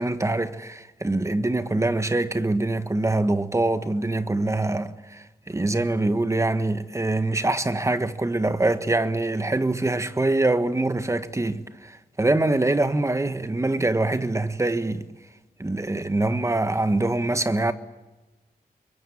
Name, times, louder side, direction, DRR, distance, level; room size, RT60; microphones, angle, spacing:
voice 1, 0.0-15.1 15.6-17.7, right 2 dB, 20° right, 1.4 m, -24 dB
25.5 x 22.5 x 8.7 m
wide cardioid pair, 120°, 15 cm